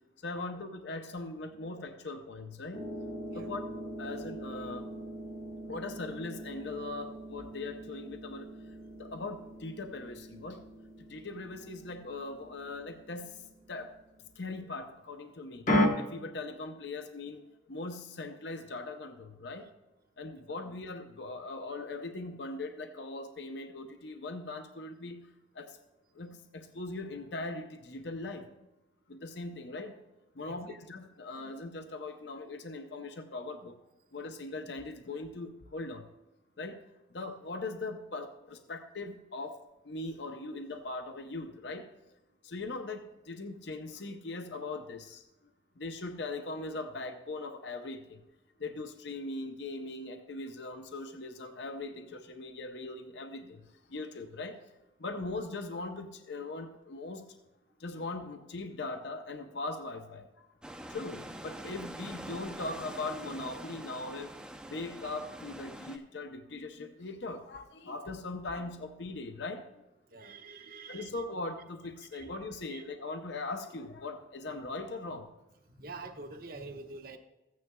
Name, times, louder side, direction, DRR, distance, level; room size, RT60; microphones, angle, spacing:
voice 1, 0.2-2.8 3.3-3.6 4.0-4.8 5.7-8.5 9.0-10.6 11.1-13.3 13.7-13.9 14.4-15.6 16.0-17.4 17.7-19.6 20.2-25.2 25.6-25.7 26.2-28.5 29.1-29.9 30.4-33.8 34.1-36.0 36.6-36.8 37.1-39.5 39.9-41.8 42.5-45.2 45.8-48.0 48.6-53.6 53.9-54.5 55.0-57.2 57.8-60.2 60.9-64.3 64.7-69.6 70.9-75.2, left 2 dB, 65° left, 6 dB, 0.7 m, -40 dB
sound 1, 2.7-14.2 15.7-15.9, equal, 40° left, 1.0 m, -37 dB
voice 2, 30.4-30.8 70.1-71.1 72.1-72.3 72.7-72.8 75.7-77.2, right 3 dB, 50° right, 5 dB, 1.0 m, -46 dB
sound 2, 60.6-66.0, right 1 dB, 5° right, 0.5 m, -45 dB
15.0 x 9.4 x 2.3 m, 0.99 s
head